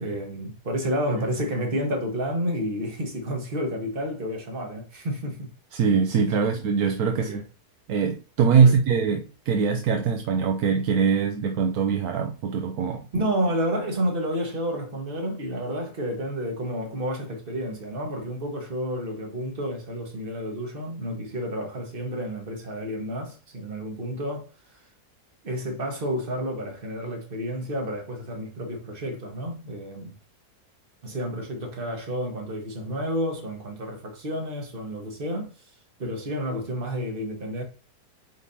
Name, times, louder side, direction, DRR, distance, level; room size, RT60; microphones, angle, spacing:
voice 1, 0.0-5.5 7.2-7.4 8.6-8.8 13.1-24.8 25.4-30.2 31.0-35.6 36.0-37.6, equal, 35° right, 1.7 m, -30 dB
voice 2, 5.7-7.4 7.9-13.1, right 6 dB, 70° right, 1.2 m, -22 dB
9.1 x 3.7 x 2.8 m
omnidirectional pair, 1.7 m